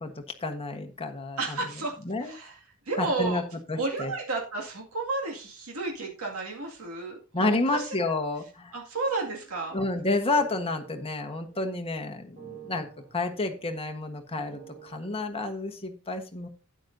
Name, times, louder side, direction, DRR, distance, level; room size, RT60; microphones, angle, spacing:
voice 1, 0.0-1.6 2.0-2.3 3.0-3.4 3.7-4.1 7.3-8.7 9.7-12.9 13.1-16.5, left 2 dB, 25° left, 4 dB, 1.3 m, -30 dB
voice 2, 1.4-2.6 2.9-3.4 3.7-8.0 8.7-9.8, right 3 dB, 75° right, -1 dB, 2.2 m, -32 dB
sound 1, 9.0-15.3, right 8 dB, 40° right, 3.2 m, -51 dB
12.5 x 9.1 x 2.7 m, 0.34 s
head